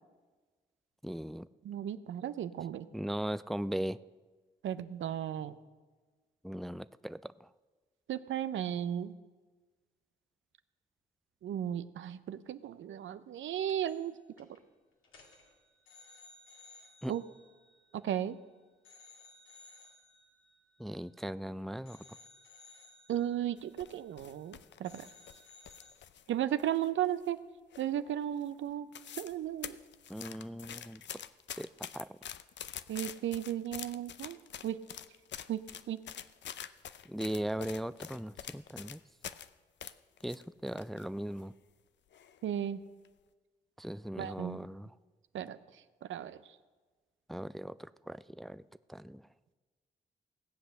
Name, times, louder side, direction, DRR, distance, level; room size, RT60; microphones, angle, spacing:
voice 1, 1.0-1.5 2.9-4.0 6.4-7.5 17.0-17.1 20.8-22.0 30.1-31.2 31.6-32.2 37.1-39.0 40.2-41.5 43.8-44.9 47.3-48.6 48.9-49.2, right 1 dB, ahead, 15 dB, 0.4 m, -38 dB
voice 2, 1.6-2.9 4.6-5.5 8.1-9.1 11.4-14.1 14.4-14.5 17.1-17.2 17.9-18.4 23.1-25.1 26.3-27.4 27.8-28.9 29.2-29.8 32.9-34.4 34.6-34.8 35.5-35.6 35.9-36.0 42.4-42.8 44.2-44.6 45.3-45.6 46.1-46.4, right 10 dB, 75° right, 13 dB, 0.7 m, -35 dB
sound 1, 13.7-14.1 14.4-14.6 15.0-18.4 18.9-21.5 21.9-24.5 24.8-25.9, left 3 dB, 80° left, 2.3 m, -59 dB
sound 2, 23.6-26.3 26.6-27.4 27.7-28.1 28.4-28.5 28.7-29.4 29.6-39.5 39.8-41.0 41.4-41.5 42.1-42.5 42.9-43.1, left 9 dB, 65° left, 0.6 m, -46 dB
17.5 x 8.0 x 6.5 m, 1.3 s
supercardioid pair, 50°, 20 cm